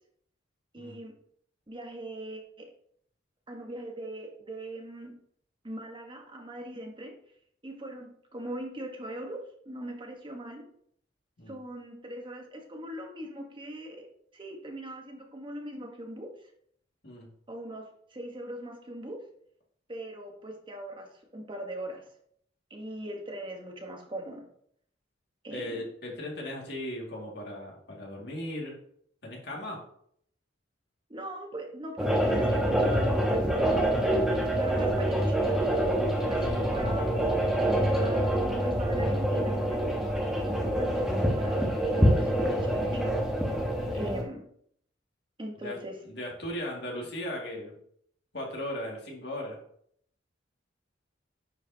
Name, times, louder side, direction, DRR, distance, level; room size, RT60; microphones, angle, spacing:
voice 1, 0.7-1.1 1.7-2.7 3.5-5.1 5.6-7.2 7.6-9.4 9.6-10.6 11.5-14.1 14.3-16.5 17.5-19.2 19.9-22.1 22.7-24.5 25.4-25.8 31.1-33.8 34.5-35.7 36.2-37.3 38.0-40.0 40.6-43.2 43.9-44.4 45.4-46.0, right 1 dB, 25° right, 2 dB, 1.2 m, -40 dB
voice 2, 25.5-28.7 29.2-29.8 34.3-34.6 36.4-36.6 43.9-44.1 45.6-45.8 46.1-47.7 48.3-49.6, left 1 dB, 60° left, -1 dB, 2.1 m, -37 dB
sound 1, 32.0-44.2, right 1 dB, 5° right, 1.1 m, -26 dB
9.9 x 4.8 x 2.8 m, 0.66 s
head